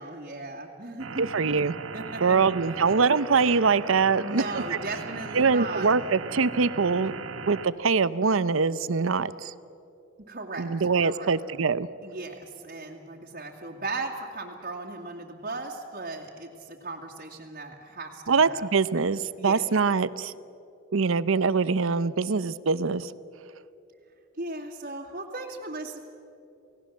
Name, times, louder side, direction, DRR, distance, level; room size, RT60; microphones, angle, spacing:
voice 1, 0.0-1.2 1.9-2.4 4.2-5.9 10.3-10.7 11.0-11.3 12.0-18.7 18.9-19.0 19.4-19.6 24.4-26.0, right 2 dB, 45° right, -3 dB, 2.3 m, -37 dB
sound 1, 1.0-7.7, right 4 dB, 85° right, 1.4 m, -38 dB
voice 2, 1.2-1.7 2.2-4.6 5.3-7.1 7.5-9.5 10.6-11.9 18.3-20.3 20.9-23.1, right 5 dB, 70° right, 16 dB, 0.7 m, -23 dB
28.5 x 18.0 x 7.3 m, 2.8 s
head